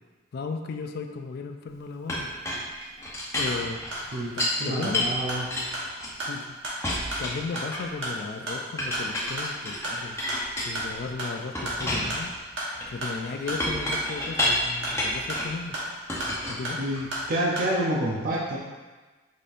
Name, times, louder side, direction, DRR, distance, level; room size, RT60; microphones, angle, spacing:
voice 1, 0.3-2.3 3.3-3.8 4.3-5.2 6.2-6.6 7.2-10.2 10.6-12.3 12.9-15.8 16.5-16.8, left 4 dB, 55° left, 6 dB, 0.3 m, -35 dB
Chink clink, 2.1-4.6 4.9-6.4 6.8-8.1 8.8-11.1 11.5-15.6 16.1-17.2, left 1 dB, 15° left, 0.7 m, -30 dB
sound 1, 3.4-17.7, right 1 dB, 75° right, 1.2 m, -35 dB
voice 2, 4.6-5.5 16.8-18.6, right 1 dB, 50° right, -4 dB, 0.5 m, -28 dB
5.0 x 4.2 x 2.5 m, 1.3 s
head